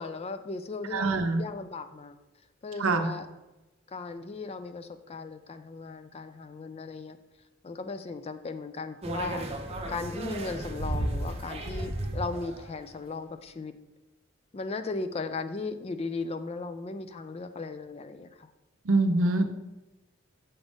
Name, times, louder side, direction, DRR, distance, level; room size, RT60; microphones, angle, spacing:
voice 1, 0.0-2.2 2.6-3.3 3.9-7.2 7.6-9.4 9.9-13.7 14.5-18.5, left 3 dB, 30° left, 10 dB, 0.4 m, -37 dB
voice 2, 0.9-1.4 2.8-3.1 18.8-19.5, right 2 dB, 75° right, 7 dB, 0.7 m, -24 dB
sound 1, 9.0-12.8, right 1 dB, 30° right, 0.7 m, -34 dB
7.1 x 3.5 x 5.2 m, 1.0 s
head